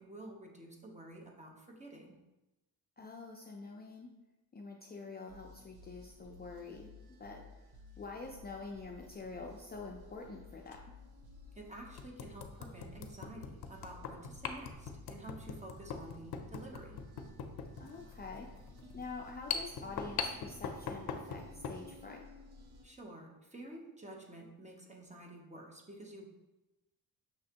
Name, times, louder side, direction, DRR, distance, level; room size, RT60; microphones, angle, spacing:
voice 1, 0.0-2.2 11.5-17.0 22.8-26.3, right 1 dB, 20° right, 0 dB, 0.8 m, -50 dB
voice 2, 3.0-4.1 4.5-6.9 7.2-7.4 8.0-10.8 17.8-18.5 18.9-22.2, left 3 dB, 25° left, 0 dB, 0.4 m, -46 dB
sound 1, 5.3-22.8, left 3 dB, 80° right, 0.8 m, -55 dB
sound 2, 9.0-9.2 10.7-10.8 11.3-11.4 12.0-21.8, left 6 dB, 85° left, 0.6 m, -42 dB
5.9 x 3.1 x 2.8 m, 1.0 s
cardioid pair, 95°, 37 cm